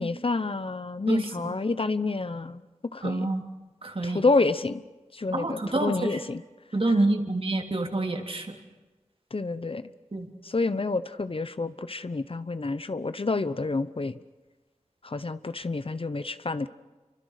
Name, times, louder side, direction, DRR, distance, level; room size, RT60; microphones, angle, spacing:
voice 1, 0.0-2.6 2.9-3.3 4.0-4.8 5.1-6.4 6.8-6.9 9.3-9.8 10.4-14.2 15.0-16.7, left 3 dB, 50° left, 13 dB, 0.9 m, -28 dB
voice 2, 3.0-3.4 3.8-4.2 5.3-5.9 6.7-8.6 10.1-10.3, right 2 dB, 50° right, 3 dB, 3.4 m, -27 dB
28.0 x 24.5 x 6.6 m, 1.2 s
wide cardioid pair, 50°, 12 cm